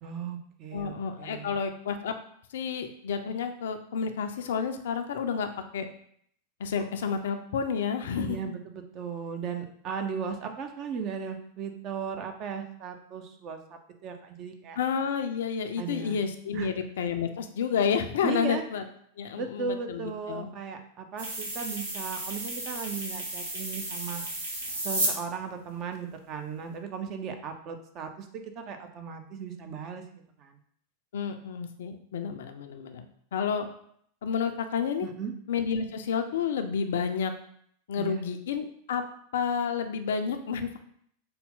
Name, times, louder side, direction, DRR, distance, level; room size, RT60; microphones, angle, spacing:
voice 1, 0.0-1.6 8.2-14.8 15.8-16.2 16.5-16.7 18.2-18.6 19.4-24.2 24.8-30.0 30.4-30.6 35.0-35.3 38.0-38.2, right 6 dB, 35° right, 5 dB, 0.4 m, -36 dB
voice 2, 0.7-2.1 2.5-5.5 5.7-5.9 6.6-8.4 14.8-18.8 19.2-20.5 31.1-33.1 33.3-33.7 34.2-35.1 35.5-37.3 37.9-39.0 39.3-40.8, left 6 dB, 60° left, 7 dB, 0.3 m, -30 dB
sound 1, 21.2-25.1, right 1 dB, 70° right, 1.0 m, -33 dB
4.1 x 2.1 x 3.7 m, 0.65 s
figure-of-eight pair, 90°, 0 cm